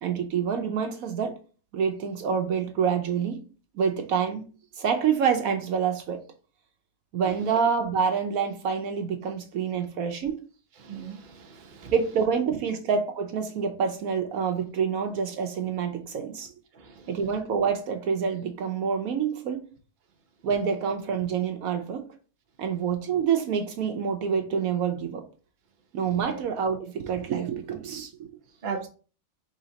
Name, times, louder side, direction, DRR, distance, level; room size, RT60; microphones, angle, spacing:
voice 1, 0.0-1.3 1.7-3.4 3.7-4.4 4.8-6.2 7.1-10.4 11.9-16.5 17.1-19.6 20.4-22.0 22.6-25.2 25.9-28.3, right 6 dB, 70° right, 1.1 m, -27 dB
voice 2, 10.8-11.9 12.5-12.6 16.7-17.1 26.3-26.4 28.6-28.9, right 5 dB, 40° right, 0.8 m, -37 dB
5.1 x 3.5 x 2.8 m
omnidirectional pair, 1.6 m